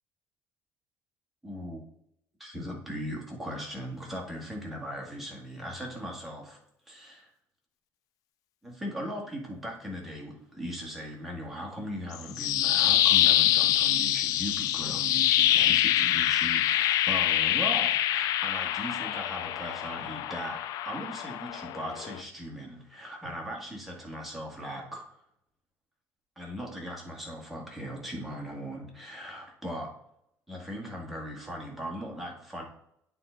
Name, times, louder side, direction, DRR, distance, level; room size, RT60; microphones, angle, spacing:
voice 1, 1.4-1.8 2.4-6.6 6.9-7.3 8.6-25.0 26.4-29.9 30.5-32.6, equal, ahead, -2 dB, 1.8 m, -38 dB
sound 1, 12.1-22.2, left 12 dB, 70° left, 0.4 m, -25 dB
9.0 x 3.8 x 3.9 m, 0.72 s
cardioid pair, 145°, 6 cm